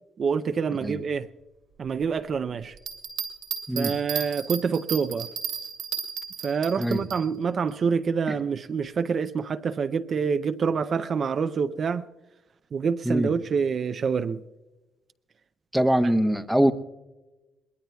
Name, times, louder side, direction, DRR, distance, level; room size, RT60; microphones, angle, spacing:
voice 1, 0.2-1.3 1.8-2.8 3.8-5.3 6.4-12.0 12.7-14.4, right 6 dB, 50° right, 0.5 m, -26 dB
Bell, 2.8-7.2 7.7-7.8, right 8 dB, 85° right, 2.3 m, -33 dB
voice 2, 15.7-16.7, equal, ahead, 0.9 m, -23 dB
22.0 x 20.0 x 2.3 m
cardioid pair, 90°, 0 cm